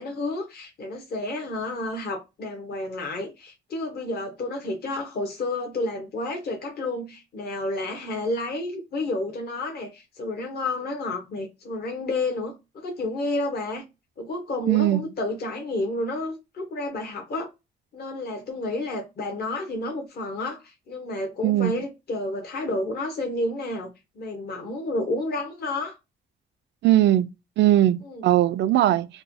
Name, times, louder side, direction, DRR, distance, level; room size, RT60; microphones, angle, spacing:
voice 1, 0.0-13.8 14.2-17.5 17.9-26.0 28.0-28.2, left 2 dB, 50° left, 0.9 m, -30 dB
voice 2, 14.7-15.0 21.4-21.8 26.8-27.3 27.6-29.1, right 13 dB, 65° right, 0.4 m, -20 dB
3.0 x 2.1 x 2.6 m
cardioid pair, 90°, 20 cm